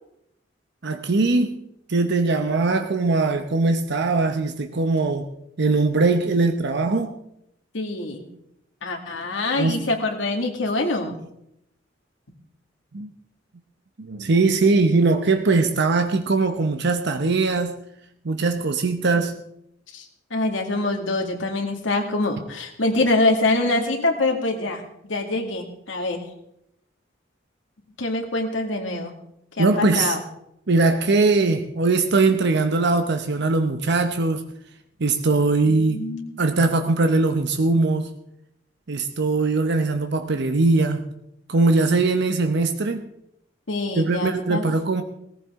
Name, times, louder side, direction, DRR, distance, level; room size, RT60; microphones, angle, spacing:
voice 1, 0.8-1.6 1.9-5.3 5.6-7.1 9.6-9.8 12.9-13.1 14.0-17.8 18.2-19.3 29.6-30.2 30.7-34.5 35.0-36.1 36.4-38.1 38.9-41.0 41.5-43.0 44.0-45.0, right 3 dB, 65° right, 7 dB, 0.8 m, -21 dB
voice 2, 7.7-8.3 8.8-11.2 19.9-20.1 20.3-26.2 28.0-29.1 29.6-30.2 35.6-36.3 43.7-44.6, left 2 dB, 80° left, 2 dB, 2.2 m, -25 dB
18.0 x 15.0 x 3.6 m, 0.77 s
head